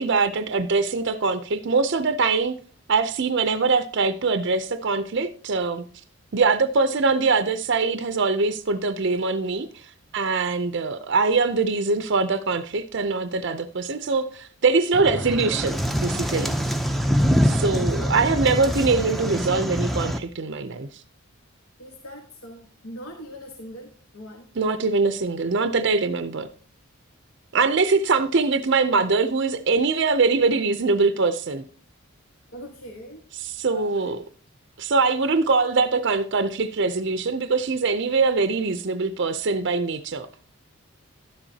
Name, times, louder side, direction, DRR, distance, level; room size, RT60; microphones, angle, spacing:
voice 1, 0.0-2.6 2.9-5.8 6.3-9.9 10.1-16.6 17.4-20.9 24.6-26.5 27.5-31.6 33.4-34.2 34.8-40.3, right 4 dB, 50° right, 0.5 m, -23 dB
sound 1, 14.9-20.2, equal, ahead, 0.5 m, -24 dB
voice 2, 17.2-17.6 21.8-24.5 32.5-33.2 33.7-34.0, equal, 70° left, 1.3 m, -42 dB
12.0 x 10.0 x 2.8 m
head